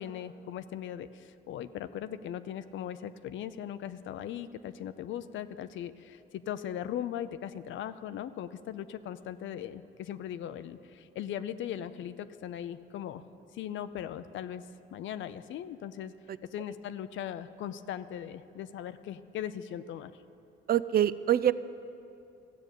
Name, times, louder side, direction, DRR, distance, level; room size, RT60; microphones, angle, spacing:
voice 1, 0.0-13.2 13.5-14.6 14.9-16.1 16.5-20.1, left 10 dB, 75° left, 12 dB, 0.5 m, -39 dB
voice 2, 20.7-21.5, right 11 dB, 50° right, 15 dB, 0.4 m, -25 dB
14.0 x 6.7 x 9.0 m, 2.6 s
cardioid pair, 90°, 20 cm